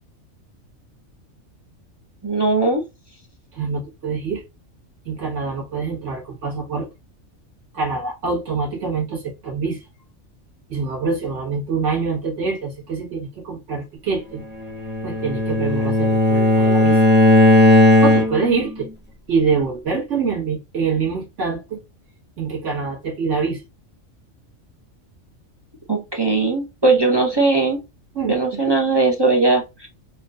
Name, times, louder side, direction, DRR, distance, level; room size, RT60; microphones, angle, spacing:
voice 1, 2.2-2.8 25.9-27.8 28.3-29.9, right 3 dB, 35° right, 0.4 m, -19 dB
voice 2, 3.5-4.4 5.0-6.9 7.7-9.8 10.7-14.4 15.0-17.0 18.0-18.9 19.3-21.8 22.4-23.6 28.1-28.7, right 5 dB, 65° right, 1.9 m, -25 dB
Bowed string instrument, 14.6-18.6, left 1 dB, 10° right, 0.8 m, -15 dB
4.3 x 2.3 x 2.5 m
omnidirectional pair, 1.4 m